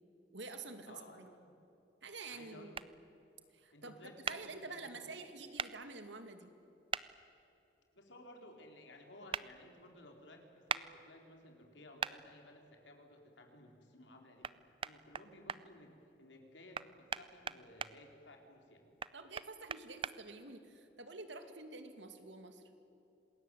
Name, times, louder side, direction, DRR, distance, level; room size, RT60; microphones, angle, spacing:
voice 1, 0.3-1.3 2.0-2.7 3.5-3.9 4.3-6.5 19.1-22.6, right 3 dB, 85° right, 7 dB, 2.5 m, -48 dB
voice 2, 0.9-1.5 2.3-2.8 3.7-5.2 7.9-18.9, left 1 dB, 90° left, 3 dB, 4.3 m, -57 dB
sound 1, 2.7-2.9 4.3-4.4 5.6-5.7 6.9-7.1 9.3-9.5 10.7-10.8 12.0-12.2 14.4-14.5 14.8-15.6 16.7-17.9 19.0-20.1, right 6 dB, 30° right, 0.5 m, -38 dB
27.0 x 20.5 x 9.4 m, 2.9 s
head